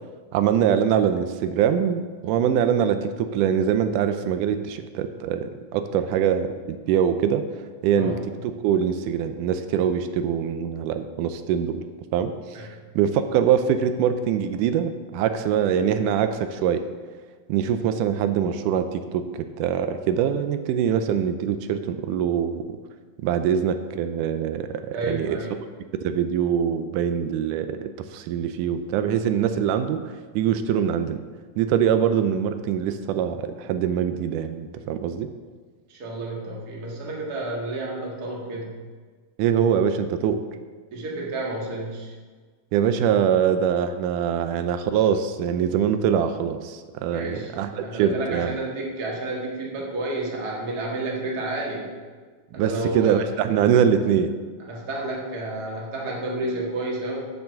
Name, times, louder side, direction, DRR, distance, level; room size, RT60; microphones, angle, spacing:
voice 1, 0.3-7.4 7.8-8.2 8.4-11.8 12.1-12.7 13.0-16.8 17.5-22.6 23.2-25.4 26.0-31.2 31.6-35.3 39.4-40.4 42.7-48.6 52.6-54.3, right 8 dB, 85° right, 9 dB, 2.1 m, -23 dB
voice 2, 24.9-25.6 35.9-38.7 40.9-42.1 47.1-51.9 52.5-53.3 54.7-57.2, right 2 dB, 35° right, -2 dB, 1.8 m, -30 dB
8.0 x 7.0 x 6.4 m, 1.5 s
omnidirectional pair, 3.6 m